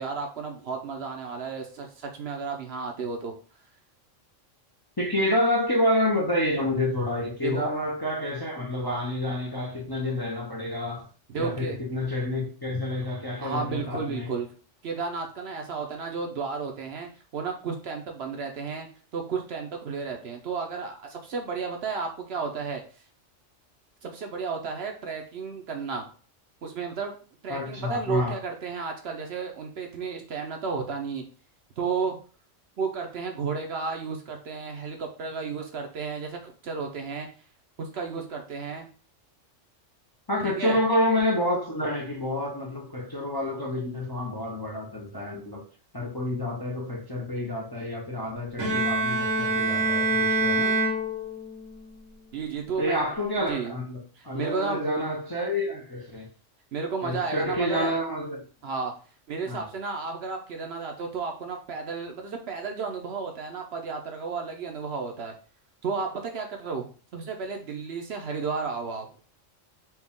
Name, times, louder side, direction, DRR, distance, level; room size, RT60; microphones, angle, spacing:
voice 1, 0.0-3.3 7.4-7.6 11.3-11.8 13.4-14.5 14.8-18.9 19.1-22.8 24.0-26.1 26.6-27.1 27.4-31.2 31.8-32.2 32.8-37.3 37.8-38.9 40.4-40.8 52.3-53.0 53.5-53.7 54.2-55.0 56.7-57.9 58.6-58.9 59.3-65.3 65.8-66.8 67.1-69.1, right 5 dB, 60° right, 0.9 m, -32 dB
voice 2, 5.0-11.1 11.4-14.3 27.5-28.4 40.3-45.6 45.9-50.7 52.8-54.0 54.2-56.3 57.0-58.4 59.5-59.6, left 1 dB, 25° left, 0.6 m, -28 dB
Bowed string instrument, 48.6-51.7, right 2 dB, 85° right, 1.2 m, -25 dB
4.4 x 2.4 x 3.6 m
omnidirectional pair, 1.3 m